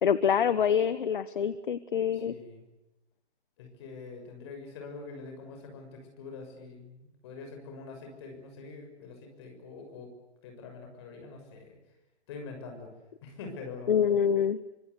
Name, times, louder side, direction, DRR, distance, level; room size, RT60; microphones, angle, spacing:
voice 1, 0.0-2.3 13.9-14.6, left 8 dB, 50° left, 14 dB, 1.1 m, -26 dB
voice 2, 2.1-2.7 3.6-10.1 10.4-11.8 12.3-12.9 13.2-14.1, left 4 dB, 25° left, 3 dB, 6.4 m, -44 dB
26.5 x 25.5 x 8.1 m, 0.94 s
hypercardioid pair, 180°, 34 cm